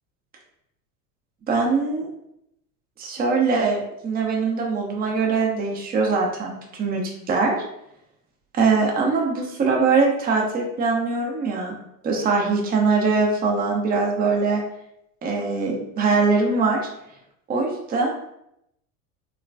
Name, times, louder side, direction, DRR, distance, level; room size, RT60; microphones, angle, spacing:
voice 1, 1.5-2.1 3.0-7.6 8.5-11.7 12.0-14.6 15.2-16.9 17.5-18.1, right 4 dB, 20° right, 0 dB, 0.5 m, -22 dB
3.0 x 2.2 x 2.5 m, 0.78 s
hypercardioid pair, 95°, 42 cm